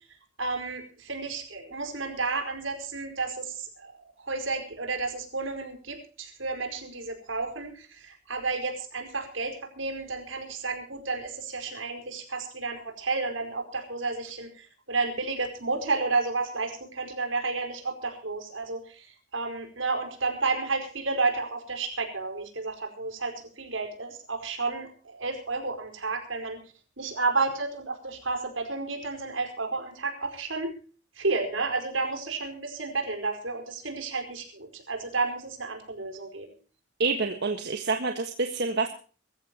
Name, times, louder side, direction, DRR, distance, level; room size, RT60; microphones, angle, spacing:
voice 1, 0.4-26.6 27.0-30.8 31.1-36.5, right 3 dB, 80° right, 5 dB, 5.0 m, -31 dB
voice 2, 37.0-38.9, right 3 dB, 60° right, 5 dB, 1.6 m, -27 dB
23.5 x 14.5 x 3.0 m, 0.39 s
head